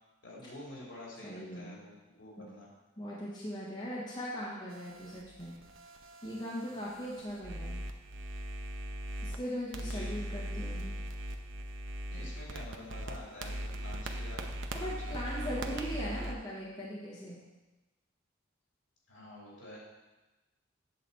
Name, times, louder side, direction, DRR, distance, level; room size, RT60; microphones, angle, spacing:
voice 1, 0.2-2.7 6.6-6.9 9.9-10.1 12.1-14.4 14.7-15.5 19.1-19.8, left 1 dB, 70° left, -5 dB, 3.1 m, -48 dB
voice 2, 1.2-1.8 2.4-2.5 3.0-5.6 6.2-7.8 9.2-10.9 14.7-17.4, equal, 25° left, -6 dB, 1.5 m, -39 dB
sound 1, 4.7-9.4 9.7-16.3, right 1 dB, 70° right, 0.8 m, -40 dB
8.3 x 4.1 x 7.1 m, 1.1 s
head